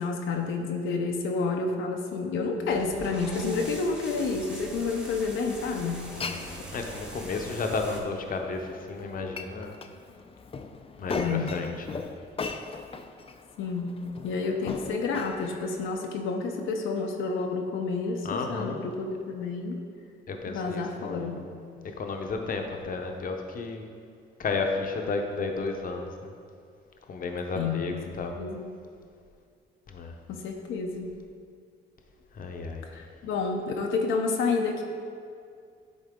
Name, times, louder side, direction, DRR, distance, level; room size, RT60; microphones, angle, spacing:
voice 1, 0.0-6.2 11.1-11.5 13.6-13.9 14.2-19.8 20.5-21.5 27.5-28.7 30.3-31.1 32.9-34.8, left 4 dB, 80° left, 2 dB, 0.7 m, -30 dB
sound 1, 2.7-8.0, right 1 dB, 5° right, 1.1 m, -42 dB
Glass, 6.0-15.9, left 4 dB, 30° left, 0.4 m, -39 dB
voice 2, 6.2-9.7 11.0-12.0 18.2-18.8 20.3-21.3 22.0-23.9 24.4-26.3 27.1-28.4 29.9-30.1 32.3-32.8, left 3 dB, 45° left, 3 dB, 0.8 m, -33 dB
10.5 x 3.9 x 3.7 m, 2.3 s
cardioid pair, 90°, 20 cm